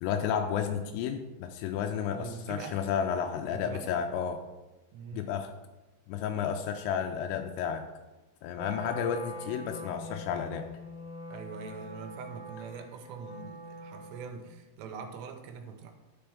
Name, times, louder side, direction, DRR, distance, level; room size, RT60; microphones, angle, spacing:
voice 1, 0.0-4.4 5.1-5.5 6.1-7.9 8.4-10.7, left 8 dB, 85° left, 5 dB, 2.8 m, -32 dB
voice 2, 2.1-2.9 3.5-3.9 4.9-5.3 11.3-15.9, right 5 dB, 85° right, 4 dB, 2.9 m, -43 dB
Wind instrument woodwind instrument, 8.5-14.5, equal, 70° left, 1.5 m, -44 dB
12.0 x 4.4 x 3.4 m, 1.1 s
omnidirectional pair, 5.1 m